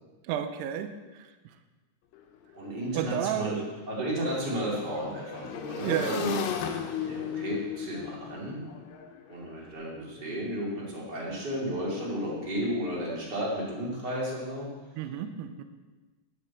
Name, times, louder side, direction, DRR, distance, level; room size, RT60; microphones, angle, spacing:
voice 1, 0.3-0.9 1.2-1.3 2.9-3.8 5.8-6.2 15.0-15.6, right 10 dB, 85° right, 9 dB, 2.7 m, -31 dB
Motorcycle / Engine, 2.1-2.2 2.5-9.6, left 8 dB, 75° left, 2.2 m, -37 dB
voice 2, 2.5-3.6 3.9-6.4 6.9-8.6 9.3-14.7, equal, 30° right, -4 dB, 2.6 m, -33 dB
12.5 x 10.5 x 4.2 m, 1.2 s
omnidirectional pair, 4.8 m